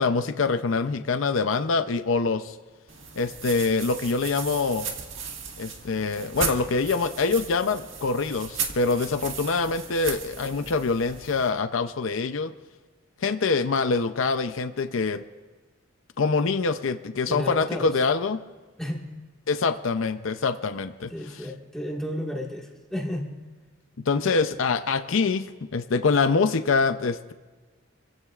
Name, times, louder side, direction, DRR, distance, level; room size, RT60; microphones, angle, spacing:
voice 1, 0.0-2.6 3.2-4.9 5.6-12.5 13.2-15.2 16.2-18.4 19.5-21.1 24.1-27.3, left 4 dB, 70° left, 9 dB, 0.6 m, -25 dB
sound 1, 2.9-11.5, right 6 dB, 65° right, 1.8 m, -36 dB
voice 2, 17.3-17.9 18.8-19.0 21.1-23.3, left 1 dB, 5° left, -2 dB, 1.7 m, -32 dB
28.0 x 16.0 x 2.4 m, 1.3 s
head